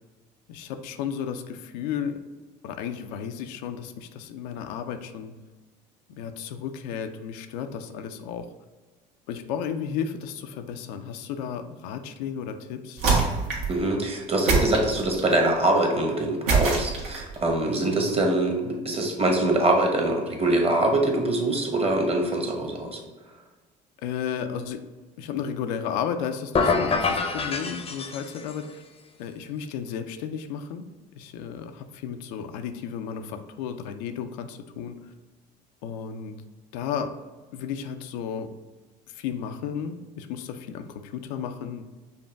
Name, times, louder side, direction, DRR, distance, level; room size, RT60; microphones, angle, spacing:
voice 1, 0.5-2.2 2.6-5.3 6.1-8.5 9.3-13.0 17.8-18.2 24.0-24.8 25.2-28.8 29.2-30.9 31.1-35.1 35.8-36.4 36.7-37.1 37.5-38.5 39.1-41.8, left 7 dB, 85° left, 7 dB, 0.4 m, -33 dB
sound 1, 13.0-13.8 14.5-15.4 16.5-17.4, right 4 dB, 75° right, 1.3 m, -24 dB
voice 2, 13.7-23.0, right 2 dB, 30° right, 2 dB, 1.0 m, -24 dB
sound 2, 26.5-28.6, left 4 dB, 25° left, 0.6 m, -26 dB
5.4 x 2.2 x 3.4 m, 1.3 s
supercardioid pair, 80°, 21 cm